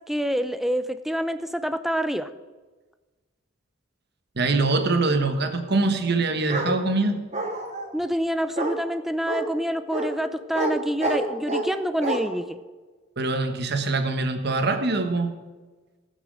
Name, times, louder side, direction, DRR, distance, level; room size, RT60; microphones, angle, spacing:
voice 1, 0.1-2.3 7.9-12.6, equal, ahead, 11 dB, 0.5 m, -27 dB
voice 2, 4.4-7.2 13.2-15.3, right 3 dB, 55° right, 7 dB, 1.3 m, -23 dB
Bark, 6.5-6.7 7.3-7.9 8.6-8.8 9.3-9.4 9.9-10.1 10.5-10.7 11.0-11.7 12.0-12.2, right 2 dB, 35° right, 1.8 m, -27 dB
18.0 x 6.1 x 6.4 m, 1.3 s
head